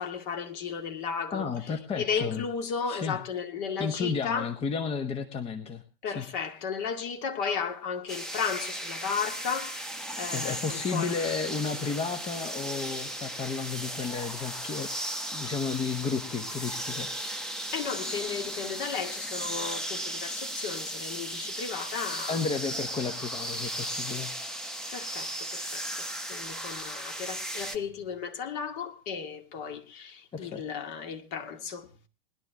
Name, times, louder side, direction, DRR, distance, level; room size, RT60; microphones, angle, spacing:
voice 1, 0.0-1.5 2.0-4.5 6.0-9.8 10.2-11.2 17.7-22.4 24.9-32.1, left 6 dB, 45° left, 2.2 m, -34 dB
voice 2, 1.3-2.4 2.8-3.2 3.8-6.3 10.3-14.9 15.3-17.5 22.3-24.3 30.3-30.6, left 5 dB, 20° left, 1.1 m, -33 dB
sound 1, 8.1-27.8, right 1 dB, ahead, 1.1 m, -36 dB
20.0 x 11.5 x 3.6 m
figure-of-eight pair, 105°, 29 cm